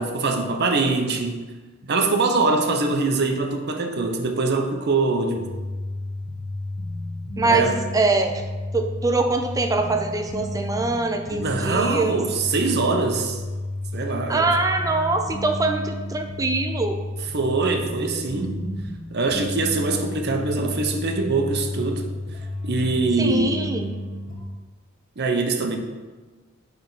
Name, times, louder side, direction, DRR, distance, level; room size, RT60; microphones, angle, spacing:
voice 1, 0.0-1.4 1.9-5.5 7.4-7.8 11.3-13.4 13.9-14.5 17.3-18.6 19.1-22.0 22.6-23.7 25.2-25.8, right 3 dB, 55° right, 4 dB, 0.7 m, -23 dB
sound 1, 5.3-24.4, left 1 dB, 40° left, 1.0 m, -32 dB
voice 2, 7.4-8.4 8.7-12.2 14.3-17.0 23.2-23.9, right 3 dB, 15° right, 5 dB, 0.4 m, -23 dB
8.4 x 3.4 x 3.9 m, 1.3 s
head